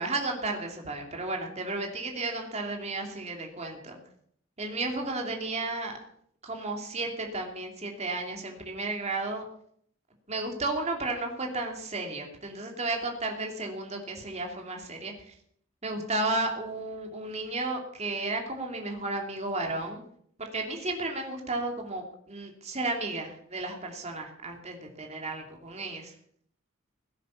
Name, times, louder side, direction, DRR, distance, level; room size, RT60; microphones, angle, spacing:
voice 1, 0.0-4.0 4.6-6.0 6.4-9.4 10.3-15.3 15.8-20.0 20.4-26.1, right 2 dB, 30° right, 2 dB, 2.7 m, -33 dB
17.0 x 10.0 x 7.1 m, 0.64 s
head